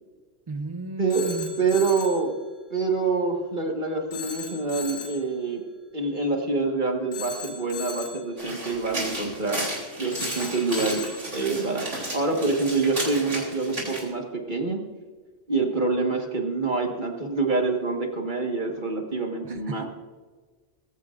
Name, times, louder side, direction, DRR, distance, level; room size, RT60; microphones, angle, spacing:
voice 1, 0.5-1.5 19.4-19.9, right 3 dB, 25° right, 8 dB, 0.8 m, -34 dB
Telephone, 1.1-2.3 4.1-5.3 7.1-8.3 10.1-11.3, left 5 dB, 40° left, 3.0 m, -37 dB
voice 2, 1.6-2.3 2.7-5.6 5.9-9.7 10.0-11.0 11.3-14.8 15.5-19.9, right 3 dB, 40° right, 2 dB, 1.8 m, -26 dB
sound 1, 8.4-14.0, right 1 dB, 70° right, 3.8 m, -33 dB
21.5 x 15.0 x 2.6 m, 1.4 s
omnidirectional pair, 1.3 m